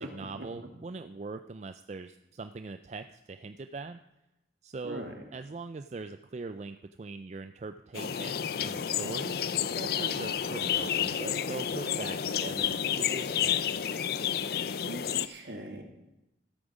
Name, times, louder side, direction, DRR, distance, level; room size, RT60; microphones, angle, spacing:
voice 1, 0.0-4.0 4.6-13.7, right 3 dB, 35° right, 9 dB, 0.4 m, -41 dB
voice 2, 4.8-5.1 14.9-15.8, right 1 dB, 65° right, 3 dB, 2.1 m, -41 dB
sound 1, 7.9-15.3, left 8 dB, 55° left, 0.4 m, -30 dB
13.5 x 8.7 x 5.0 m, 0.92 s
head